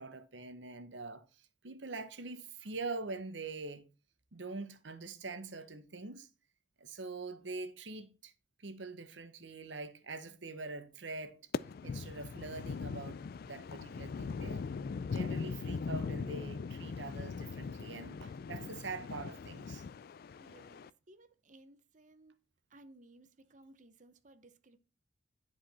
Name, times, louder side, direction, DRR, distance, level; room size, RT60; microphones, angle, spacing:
voice 1, 0.0-3.8 4.3-6.3 6.8-8.3 8.6-11.4 11.8-14.7 15.1-19.8, right 3 dB, 75° right, 1.1 m, -44 dB
sound 1, 11.5-20.9, left 5 dB, 50° left, 0.3 m, -40 dB
voice 2, 20.4-22.4 22.7-24.8, right 2 dB, 40° right, 0.9 m, -60 dB
10.5 x 5.0 x 4.2 m
head